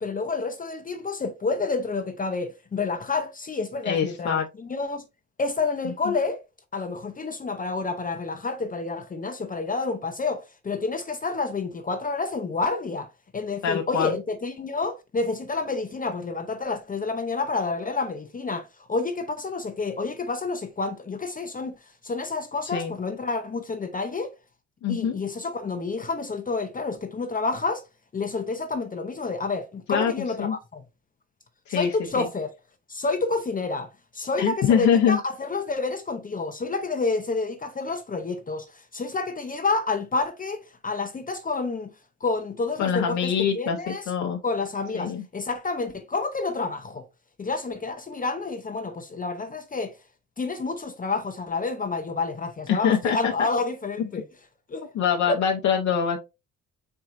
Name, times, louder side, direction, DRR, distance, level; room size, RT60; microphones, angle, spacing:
voice 1, 0.0-5.0 5.4-6.4 6.7-21.7 22.0-24.3 24.9-27.8 28.1-30.8 31.7-32.5 32.9-41.9 42.2-44.1 44.4-47.0 47.4-49.9 50.4-54.2 54.7-54.9 55.3-55.4, left 3 dB, 30° left, 0.7 m, -29 dB
voice 2, 3.8-4.5 6.1-6.2 13.6-14.2 22.7-22.9 24.8-25.2 29.9-30.1 30.4-30.6 31.7-31.9 32.2-32.3 34.4-35.2 42.8-44.4 44.9-45.2 52.7-53.2 54.9-56.2, left 7 dB, 65° left, 0.8 m, -24 dB
4.6 x 4.5 x 2.5 m
cardioid pair, 90°, 30 cm